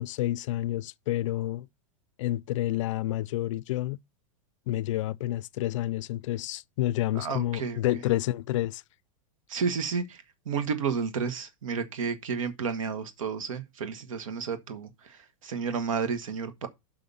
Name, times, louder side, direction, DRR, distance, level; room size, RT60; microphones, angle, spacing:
voice 1, 0.0-1.7 2.2-4.0 4.7-8.8, left 15 dB, 70° left, 0.4 m, -29 dB
voice 2, 7.1-7.8 9.5-16.7, right 6 dB, 85° right, 1.4 m, -31 dB
5.7 x 5.5 x 6.9 m
supercardioid pair, 135°, 17 cm